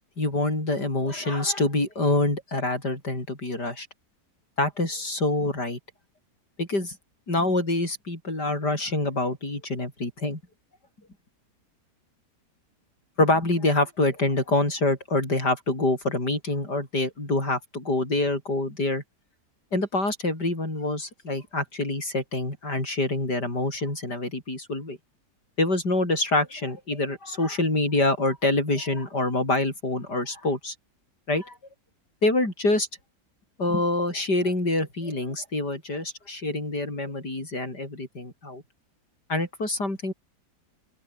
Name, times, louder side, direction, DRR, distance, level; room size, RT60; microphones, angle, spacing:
voice 1, 0.2-3.9 4.6-5.8 6.6-7.0 7.3-10.4 13.2-19.0 19.7-25.0 25.6-30.7 31.3-31.6 32.2-32.9 33.6-38.6 39.3-40.1, left 2 dB, 85° left, 8.7 m, -26 dB
open air
omnidirectional pair, 1.7 m